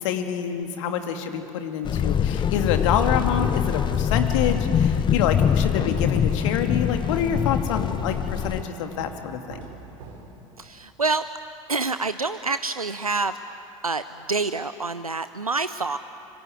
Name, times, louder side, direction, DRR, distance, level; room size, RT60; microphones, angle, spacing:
voice 1, 0.0-9.6, left 8 dB, 60° left, 6 dB, 2.4 m, -27 dB
sound 1, 1.8-8.6, left 8 dB, 25° left, 0.7 m, -23 dB
sound 2, 2.9-10.7, right 2 dB, 65° right, 4.1 m, -42 dB
voice 2, 10.6-11.3 11.7-13.4 13.8-14.0 14.3-16.0, right 3 dB, 90° right, 12 dB, 0.5 m, -27 dB
26.0 x 24.0 x 9.3 m, 2.8 s
figure-of-eight pair, 75°, 18 cm